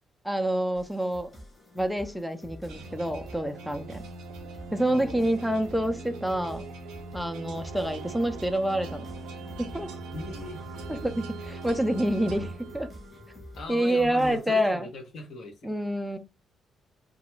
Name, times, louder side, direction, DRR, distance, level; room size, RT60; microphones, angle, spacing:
voice 1, 0.2-1.3 1.7-4.0 4.7-6.6 7.1-9.1 9.6-9.9 10.9-12.9 13.7-14.9 15.6-16.2, right 1 dB, ahead, 0.4 m, -27 dB
sound 1, 0.7-14.7, equal, 20° left, 0.9 m, -48 dB
sound 2, 2.7-13.3, right 3 dB, 90° right, 0.4 m, -41 dB
voice 2, 4.9-5.3 10.1-10.7 13.6-15.7, left 2 dB, 65° left, 0.7 m, -39 dB
2.3 x 2.2 x 3.0 m
cardioid pair, 90°, 0 cm